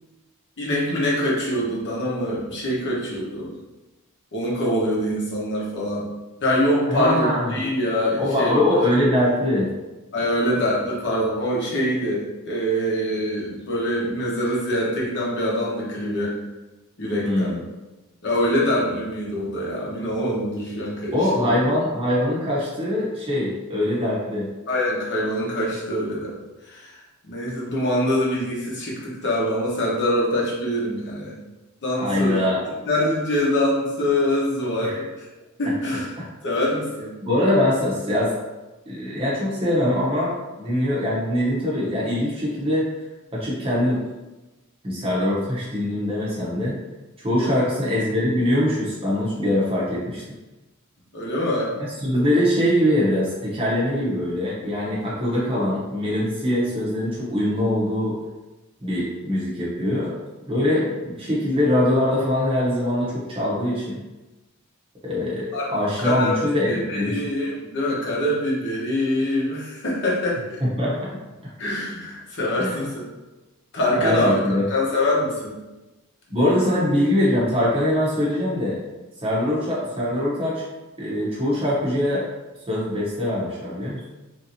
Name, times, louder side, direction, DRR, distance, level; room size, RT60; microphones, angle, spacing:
voice 1, 0.6-3.5 4.3-6.1 6.4-8.6 10.1-16.3 17.0-17.5 18.2-21.5 24.7-26.4 26.7-31.3 31.8-32.4 32.8-35.3 35.6-36.1 36.4-37.1 47.4-47.7 51.1-51.7 65.5-65.7 66.0-70.6 71.6-73.1 73.7-74.4 74.7-75.6 76.3-76.5 79.4-79.6, left 1 dB, 55° left, -5 dB, 0.9 m, -24 dB
voice 2, 6.9-7.5 8.2-9.7 17.2-17.6 21.1-24.5 32.0-32.6 34.8-35.0 37.2-38.3 38.9-42.9 43.3-44.0 44.8-46.8 47.2-50.2 51.8-58.2 58.8-60.1 60.5-64.0 65.0-67.2 70.6-71.1 72.6-72.9 74.0-74.7 76.3-78.8 79.2-80.6 81.0-82.2 82.7-84.0, left 1 dB, 25° right, -7 dB, 0.7 m, -23 dB
3.2 x 2.7 x 2.7 m, 1.1 s
head